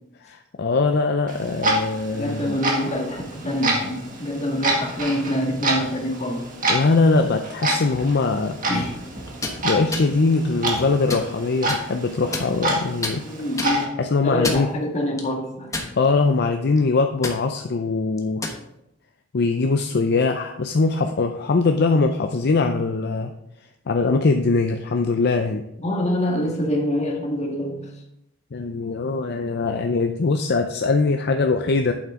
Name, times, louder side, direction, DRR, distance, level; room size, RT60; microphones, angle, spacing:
voice 1, 0.2-2.6 6.7-8.6 9.6-13.2 14.0-14.7 16.0-18.4 19.3-23.3 23.9-25.6 28.5-31.9, left 3 dB, 55° left, 5 dB, 0.5 m, -21 dB
Clock, 1.3-13.8, right 1 dB, 45° right, 1.9 m, -28 dB
voice 2, 2.1-6.5 8.7-8.9 13.2-14.0 14.2-15.7 25.8-27.9, left 1 dB, 35° left, 0 dB, 1.7 m, -25 dB
sound 1, 9.3-9.6 9.9-10.1 10.7-11.3 11.7-11.8 12.3-12.8 13.0-13.2 13.6-13.7 14.3-14.7 15.2-15.3 15.7-16.3 16.6-16.8 17.2-17.4 18.2-18.6, left 2 dB, 15° left, 1.1 m, -29 dB
8.7 x 7.5 x 3.7 m, 0.84 s
head